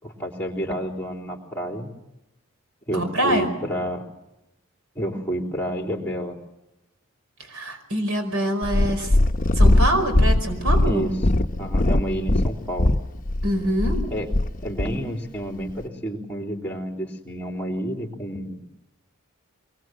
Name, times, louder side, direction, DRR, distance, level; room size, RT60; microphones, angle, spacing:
voice 1, 0.0-1.9 2.9-4.0 5.0-6.4 10.8-11.1 11.6-12.9 14.1-18.7, equal, 5° left, 1 dB, 3.5 m, -30 dB
voice 2, 2.9-3.5 7.5-9.1 9.6-11.1 13.4-14.0, equal, 90° right, 7 dB, 5.0 m, -24 dB
Purr, 8.6-14.9 15.7-15.8, left 1 dB, 40° left, 0.9 m, -20 dB
24.0 x 21.5 x 7.6 m, 0.93 s
head